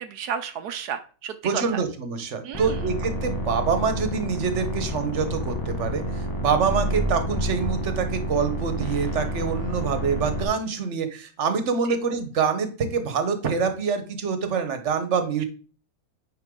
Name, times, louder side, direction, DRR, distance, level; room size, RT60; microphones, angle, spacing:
voice 1, 0.0-1.6 2.4-2.9 11.9-12.0, right 8 dB, 80° right, 9 dB, 1.2 m, -32 dB
voice 2, 1.4-15.4, right 6 dB, 50° right, 8 dB, 1.4 m, -26 dB
sound 1, 2.5-10.5, equal, 15° left, 1.6 m, -29 dB
9.3 x 5.5 x 3.8 m, 0.38 s
omnidirectional pair, 1.7 m